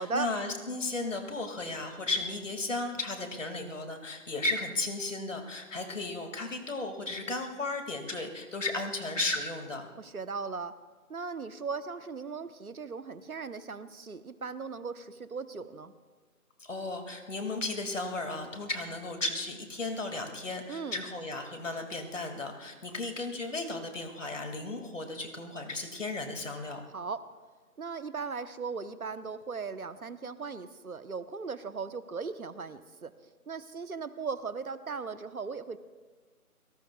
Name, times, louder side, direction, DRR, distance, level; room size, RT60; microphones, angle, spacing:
voice 1, 0.0-9.9 16.6-26.8, left 2 dB, 55° left, 5 dB, 2.4 m, -35 dB
voice 2, 10.0-10.7 11.1-15.9 20.7-21.0 26.9-27.2 27.8-33.1 33.5-35.8, right 4 dB, 70° right, 12 dB, 1.1 m, -38 dB
28.0 x 18.5 x 2.4 m, 1.4 s
figure-of-eight pair, 175°, 45 cm